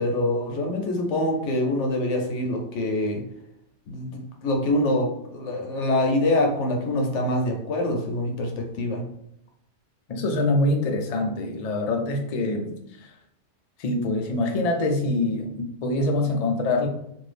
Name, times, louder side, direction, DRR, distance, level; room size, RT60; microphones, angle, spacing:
voice 1, 0.0-3.2 3.9-9.1, left 1 dB, 85° left, 2 dB, 1.0 m, -25 dB
voice 2, 10.1-13.1 13.8-16.9, left 2 dB, 55° left, 3 dB, 0.4 m, -25 dB
2.7 x 2.5 x 3.3 m, 0.76 s
omnidirectional pair, 1.2 m